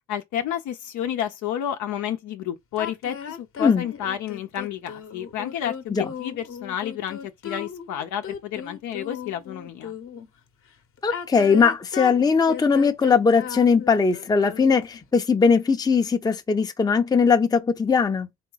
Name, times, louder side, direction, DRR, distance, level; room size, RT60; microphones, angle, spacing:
voice 1, 0.1-9.9, left 10 dB, 80° left, 0.7 m, -30 dB
sound 1, 2.8-10.3 11.0-15.0, left 7 dB, 50° left, 0.9 m, -36 dB
voice 2, 11.0-18.3, left 5 dB, 15° left, 0.6 m, -20 dB
3.8 x 3.5 x 3.9 m
cardioid pair, 90°, 29 cm